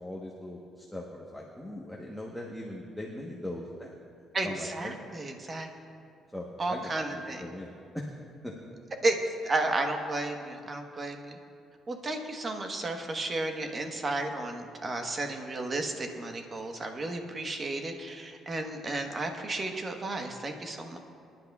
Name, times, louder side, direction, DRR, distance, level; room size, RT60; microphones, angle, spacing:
voice 1, 0.0-3.9 4.4-5.0 6.3-8.1 8.4-8.5, left 1 dB, 5° left, -3 dB, 1.1 m, -40 dB
voice 2, 4.3-5.7 6.6-7.5 9.0-9.2 9.4-11.4 11.9-21.0, right 2 dB, 30° right, 4 dB, 1.2 m, -33 dB
24.0 x 10.5 x 2.4 m, 2.4 s
cardioid pair, 120°, 0 cm